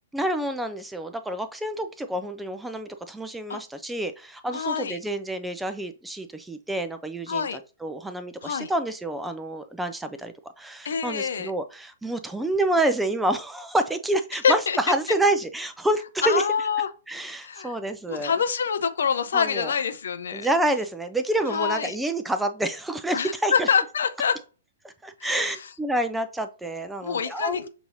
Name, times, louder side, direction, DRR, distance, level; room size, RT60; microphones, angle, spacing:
voice 1, 0.1-16.4 17.1-18.3 19.3-19.7 20.3-23.7 24.8-27.7, right 1 dB, 5° right, 0.4 m, -28 dB
voice 2, 4.5-5.0 7.3-7.6 8.4-8.7 10.8-11.5 14.4-14.8 16.2-16.9 17.4-17.7 18.1-20.5 21.5-22.0 23.1-24.4 25.2-25.5 27.0-27.7, left 6 dB, 60° left, 0.5 m, -26 dB
6.8 x 2.6 x 2.6 m
figure-of-eight pair, 115°, 0 cm